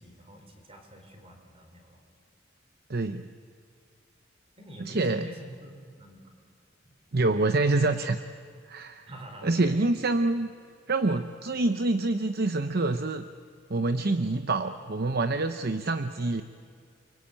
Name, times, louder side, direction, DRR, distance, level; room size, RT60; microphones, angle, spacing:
voice 1, 0.0-2.0 4.6-6.2 9.0-9.7, right 1 dB, 30° right, 4 dB, 4.7 m, -46 dB
voice 2, 2.9-3.3 4.8-5.3 7.1-8.2 8.7-9.1 9.4-10.5 10.9-13.3 13.7-16.4, right 2 dB, 50° right, 8 dB, 0.8 m, -26 dB
29.5 x 22.5 x 9.0 m, 2.3 s
head